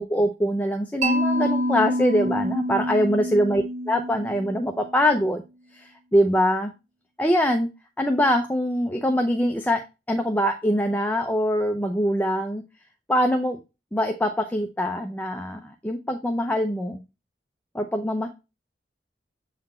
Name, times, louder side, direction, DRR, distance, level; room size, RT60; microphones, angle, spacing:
voice 1, 0.0-5.4 5.7-6.7 7.2-7.7 8.0-9.8 10.1-12.6 13.1-13.6 13.9-17.0 17.7-18.3, equal, 10° left, 4 dB, 0.6 m, -23 dB
Mallet percussion, 1.0-5.0, equal, 40° right, 0.8 m, -27 dB
7.6 x 4.1 x 4.2 m, 0.27 s
head